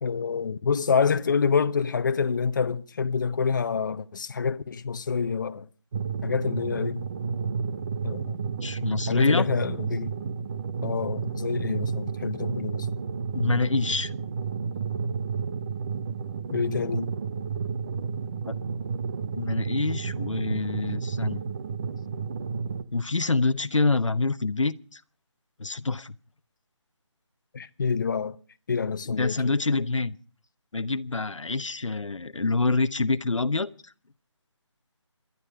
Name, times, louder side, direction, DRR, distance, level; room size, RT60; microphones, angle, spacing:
voice 1, 0.0-5.6 6.2-7.0 8.0-8.4 9.1-10.2 10.8-12.9 16.5-17.1 27.5-28.4 28.7-29.4, left 5 dB, 40° left, 0.9 m, -27 dB
sound 1, 5.9-22.8, right 5 dB, 20° right, 0.7 m, -31 dB
voice 2, 8.6-9.5 13.3-14.1 18.4-18.5 19.3-21.4 22.9-25.0 25.6-26.1 29.1-30.2 30.7-33.9, left 3 dB, 90° left, 1.0 m, -26 dB
27.0 x 11.0 x 4.8 m
figure-of-eight pair, 165°, 16 cm